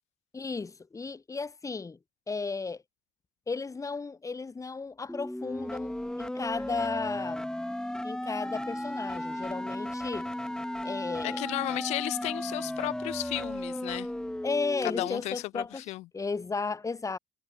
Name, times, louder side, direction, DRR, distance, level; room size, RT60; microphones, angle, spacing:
voice 1, 0.3-2.0 2.3-2.8 3.5-7.5 8.0-10.3 10.8-11.4 14.4-15.8 16.1-17.2, left 4 dB, 30° left, 4.7 m, -34 dB
sound 1, 5.1-15.1, left 1 dB, 5° left, 5.0 m, -35 dB
voice 2, 11.2-14.1 14.8-16.1, left 18 dB, 75° left, 1.0 m, -34 dB
supercardioid pair, 70°, 12 cm